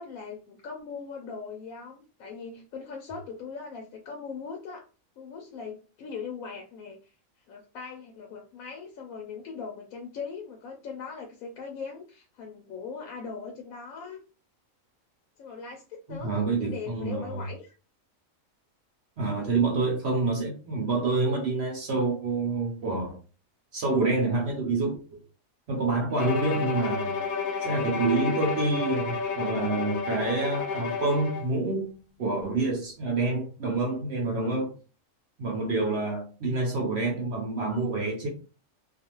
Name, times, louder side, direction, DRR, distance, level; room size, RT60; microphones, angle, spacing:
voice 1, 0.0-4.9 5.2-7.1 7.5-14.2 15.4-16.3 16.6-17.7 22.5-22.6, left 5 dB, 85° left, 1.0 m, -40 dB
voice 2, 16.1-17.5 19.2-23.2 23.7-25.2 25.7-27.2 27.6-34.7 35.4-38.3, right 3 dB, 60° right, 0.8 m, -27 dB
Bowed string instrument, 26.2-31.5, left 5 dB, 65° left, 0.8 m, -31 dB
2.5 x 2.4 x 2.9 m
omnidirectional pair, 1.4 m